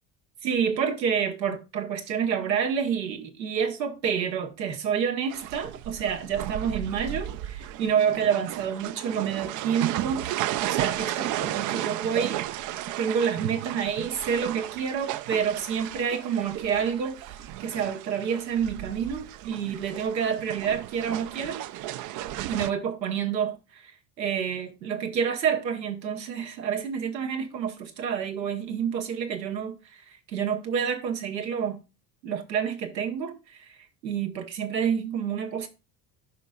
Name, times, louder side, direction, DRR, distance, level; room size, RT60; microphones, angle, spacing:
voice 1, 0.4-12.4 13.0-21.6 22.5-31.8 32.2-33.8 34.0-35.7, right 7 dB, 85° right, 1.3 m, -28 dB
sound 1, 5.3-22.7, right 13 dB, 40° right, 0.4 m, -34 dB
11.0 x 5.1 x 2.3 m
hypercardioid pair, 70°, 50 cm